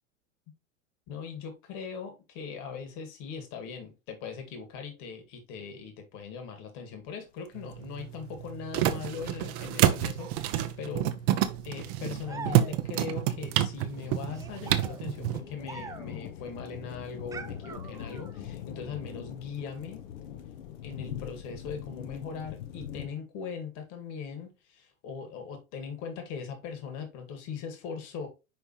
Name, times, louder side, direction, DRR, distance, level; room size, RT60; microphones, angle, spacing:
voice 1, 1.1-11.1 11.6-20.0 20.8-28.3, left 6 dB, 50° left, 2.5 m, -40 dB
sound 1, 7.4-7.5 7.7-23.1, left 10 dB, 65° left, 1.2 m, -43 dB
sound 2, 7.6-15.4, right 12 dB, 50° right, 1.0 m, -29 dB
sound 3, 12.2-13.1 14.3-16.3 17.3-18.4, right 4 dB, 10° right, 0.4 m, -44 dB
10.5 x 3.5 x 3.2 m
hypercardioid pair, 95°, 39 cm